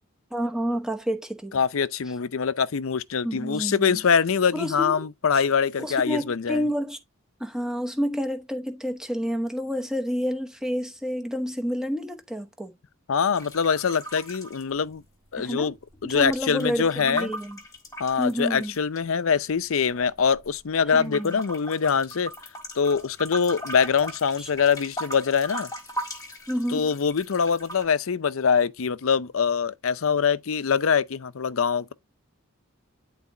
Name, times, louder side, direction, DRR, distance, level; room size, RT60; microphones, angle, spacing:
voice 1, 0.3-1.6 3.2-4.0 4.5-5.1 5.3-5.4 5.8-7.0 7.4-12.7 15.4-15.7 16.0-17.6 18.2-18.7 20.9-21.4 24.4-24.5 26.5-26.9, equal, 5° right, 0.9 m, -29 dB
voice 2, 1.5-6.6 13.1-15.0 15.3-15.7 16.0-17.3 18.0-22.3 22.8-25.7 26.7-31.9, left 6 dB, 70° left, 0.5 m, -24 dB
sound 1, 13.3-15.4 15.6-19.0 19.6-20.6 21.0-27.8, equal, 15° left, 1.7 m, -39 dB
10.5 x 4.0 x 2.7 m
head